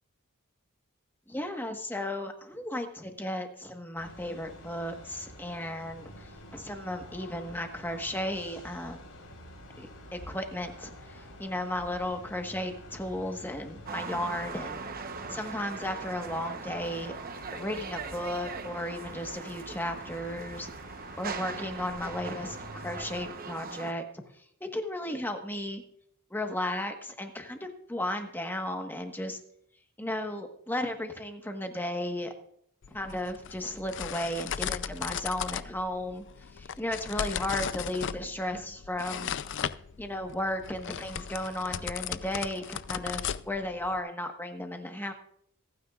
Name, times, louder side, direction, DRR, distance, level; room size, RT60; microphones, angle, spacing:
voice 1, 1.3-9.0 9.8-14.8 15.3-17.1 17.5-20.7 21.2-24.0 24.6-25.8 26.3-29.4 30.0-32.3 32.9-36.2 36.5-39.3 40.0-45.1, left 1 dB, 10° left, 5 dB, 1.3 m, -34 dB
sound 1, 4.0-23.3, left 1 dB, 85° left, 4.0 m, -48 dB
sound 2, 13.9-23.9, right 5 dB, 40° right, 0.9 m, -40 dB
sound 3, 32.8-44.0, left 8 dB, 55° left, 0.5 m, -37 dB
26.5 x 9.5 x 2.4 m, 0.69 s
head